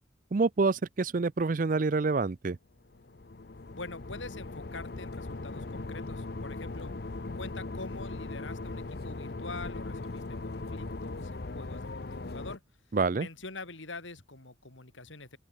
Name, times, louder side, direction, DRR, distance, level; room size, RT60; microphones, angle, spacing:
voice 1, 0.3-2.6 12.9-13.3, right 3 dB, 45° right, 0.5 m, -27 dB
sound 1, 2.9-12.6, left 2 dB, 55° left, 0.8 m, -39 dB
voice 2, 3.7-6.9 7.4-12.6 13.2-15.4, left 3 dB, 80° left, 4.1 m, -44 dB
open air
head